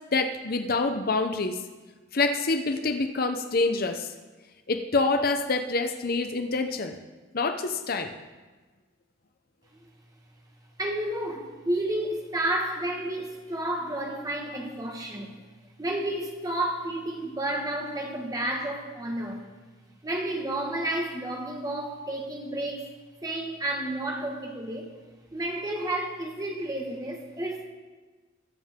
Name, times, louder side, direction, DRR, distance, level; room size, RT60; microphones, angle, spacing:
voice 1, 0.1-1.6 2.1-4.1 4.7-7.0 7.3-8.1, left 3 dB, 50° left, 7 dB, 0.7 m, -26 dB
voice 2, 10.8-15.4 15.8-19.4 20.0-22.9 23.2-24.9 25.3-27.6, right 1 dB, 20° right, 1 dB, 1.7 m, -31 dB
21.5 x 7.5 x 3.7 m, 1.3 s
head